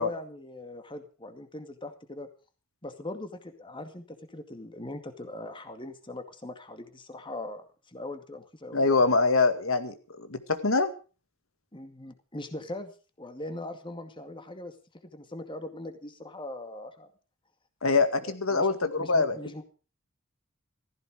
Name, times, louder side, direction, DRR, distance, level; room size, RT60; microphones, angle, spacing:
voice 1, 0.0-2.3 2.8-8.8 11.7-14.7 15.1-17.1 18.5-18.7 19.0-19.6, left 1 dB, 25° left, 7 dB, 2.3 m, -40 dB
voice 2, 8.7-10.9 17.8-19.4, left 3 dB, 85° left, 10 dB, 2.1 m, -24 dB
16.0 x 15.0 x 5.0 m, 0.36 s
head